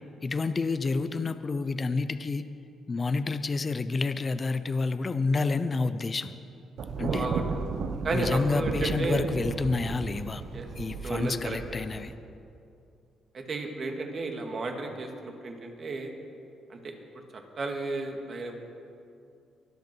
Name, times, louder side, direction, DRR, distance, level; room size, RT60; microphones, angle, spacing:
voice 1, 0.2-2.4 2.9-6.3 7.0-7.3 8.1-10.4 10.8-12.1, left 3 dB, 35° left, 11 dB, 0.7 m, -29 dB
Thunder, 6.8-12.1, right 4 dB, 65° right, 1.2 m, -34 dB
voice 2, 7.1-7.4 8.0-9.3 10.5-10.7 11.0-11.6 13.3-16.1 16.7-16.9 17.6-18.5, right 3 dB, 45° right, 3 dB, 2.2 m, -33 dB
24.0 x 8.2 x 6.2 m, 2.5 s
cardioid pair, 90°, 0 cm